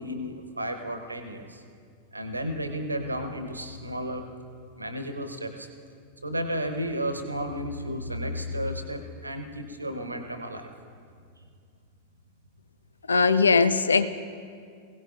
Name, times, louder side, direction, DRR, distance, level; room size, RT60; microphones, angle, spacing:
voice 1, 0.0-1.6 2.1-4.2 4.7-5.7 6.2-10.7, equal, 85° right, 7 dB, 1.1 m, -33 dB
voice 2, 13.1-14.1, left 4 dB, 75° left, 12 dB, 0.4 m, -20 dB
21.0 x 17.0 x 2.6 m, 2.2 s
figure-of-eight pair, 90°, 0 cm